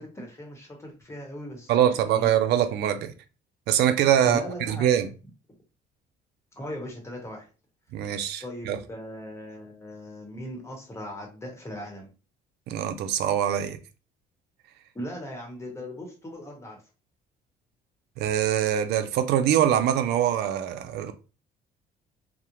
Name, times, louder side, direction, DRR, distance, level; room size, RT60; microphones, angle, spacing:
voice 1, 0.0-2.3 4.2-4.9 6.5-7.5 8.4-12.1 14.9-16.8, equal, 15° left, 1.0 m, -38 dB
voice 2, 1.7-3.1 3.7-4.4 4.7-5.1 7.9-8.8 12.7-13.8 18.2-21.1, right 10 dB, 75° right, 0.4 m, -23 dB
2.4 x 2.0 x 2.9 m
cardioid pair, 110°, 17 cm